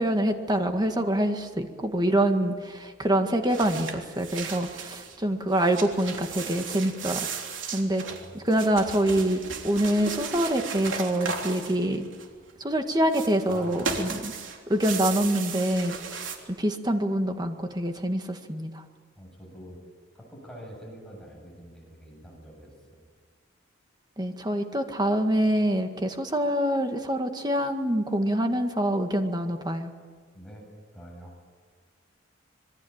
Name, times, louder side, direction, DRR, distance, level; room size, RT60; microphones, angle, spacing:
voice 1, 0.0-7.3 7.7-8.0 8.3-12.0 12.6-14.3 14.7-16.2 16.5-18.8 24.2-29.9, right 1 dB, 20° right, 5 dB, 1.9 m, -25 dB
sound 1, 3.5-5.2 5.5-12.5 13.1-16.4, right 5 dB, 65° right, 3.4 m, -35 dB
voice 2, 8.1-8.5 13.5-14.1 19.2-19.8 20.1-23.0 30.3-30.6 30.9-31.3, equal, 5° left, -1 dB, 7.8 m, -45 dB
26.5 x 22.0 x 8.9 m, 1.6 s
head